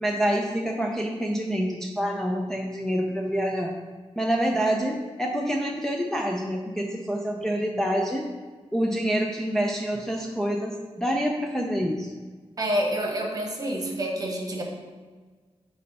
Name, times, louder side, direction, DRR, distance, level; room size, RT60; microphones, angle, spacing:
voice 1, 0.0-3.7 4.2-8.3 8.7-12.1, equal, 5° left, -1 dB, 0.5 m, -27 dB
voice 2, 12.6-14.6, right 1 dB, 35° right, 1 dB, 1.2 m, -28 dB
8.1 x 3.2 x 5.4 m, 1.4 s
wide cardioid pair, 135°, 11 cm